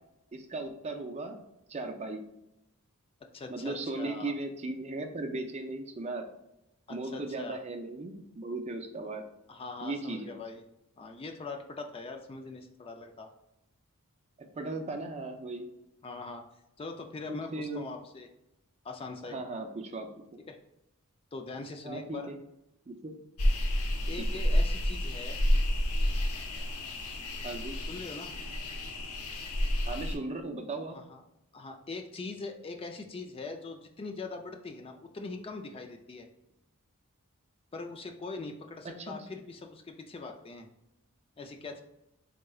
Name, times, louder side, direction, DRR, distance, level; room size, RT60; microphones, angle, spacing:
voice 1, 0.3-1.4 1.7-2.2 3.5-6.3 6.9-9.2 9.8-10.4 14.5-15.7 17.3-17.8 19.2-20.4 21.8-22.4 22.9-23.1 24.2-24.3 27.4-27.8 29.9-31.0 39.0-39.2, right 2 dB, 30° right, 4 dB, 0.5 m, -37 dB
voice 2, 3.3-4.3 6.9-7.6 9.5-10.6 11.0-13.3 16.0-16.4 16.8-18.3 18.8-19.4 20.5-20.6 21.3-22.3 24.1-25.4 27.9-28.3 30.9-31.2 31.5-36.3 37.7-40.7 41.4-41.8, left 3 dB, 25° left, 4 dB, 0.4 m, -42 dB
sound 1, 23.4-30.2, equal, 75° left, 0.7 m, -29 dB
4.3 x 3.7 x 2.3 m, 0.88 s
head